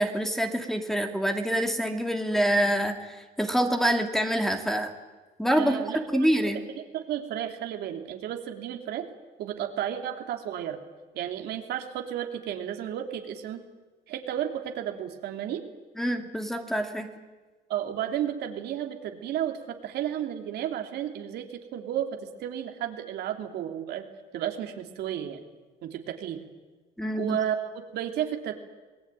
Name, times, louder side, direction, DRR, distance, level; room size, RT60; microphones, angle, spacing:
voice 1, 0.0-2.9 3.4-4.9 5.4-6.6 16.0-17.1 27.0-27.4, equal, ahead, 5 dB, 2.6 m, -26 dB
voice 2, 5.6-9.0 9.4-10.8 11.1-13.6 14.1-15.6 17.7-24.1 24.3-25.4 25.8-26.4 27.2-28.5, right 10 dB, 75° right, 4 dB, 3.0 m, -33 dB
27.0 x 19.5 x 9.1 m, 1.3 s
cardioid pair, 110°, 17 cm